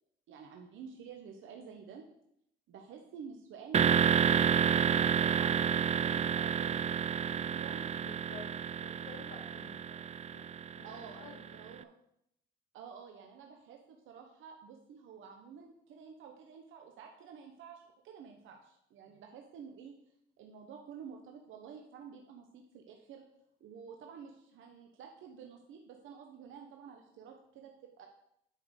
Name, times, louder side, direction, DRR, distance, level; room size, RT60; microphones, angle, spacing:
voice 1, 0.3-2.0 2.7-7.9 10.8-11.9 12.7-19.9 20.4-23.2 23.6-28.1, right 6 dB, 80° right, 3 dB, 1.0 m, -50 dB
sound 1, 3.7-11.5, right 7 dB, 35° right, 0.5 m, -30 dB
voice 2, 8.0-11.4, left 5 dB, 80° left, 3 dB, 1.9 m, -53 dB
9.5 x 4.0 x 6.5 m, 0.76 s
cardioid pair, 90°, 20 cm